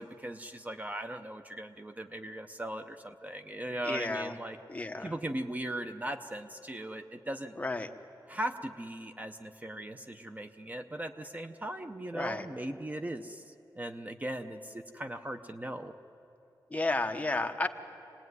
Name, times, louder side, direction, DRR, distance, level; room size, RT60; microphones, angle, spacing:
voice 1, 0.0-4.6 5.0-7.6 8.3-15.9, right 1 dB, 20° right, 7 dB, 0.7 m, -39 dB
voice 2, 3.8-4.3 4.7-5.1 7.6-7.9 12.1-12.5 16.7-17.7, left 2 dB, 20° left, 5 dB, 1.0 m, -32 dB
26.5 x 20.0 x 9.5 m, 3.0 s
wide cardioid pair, 160°, 8 cm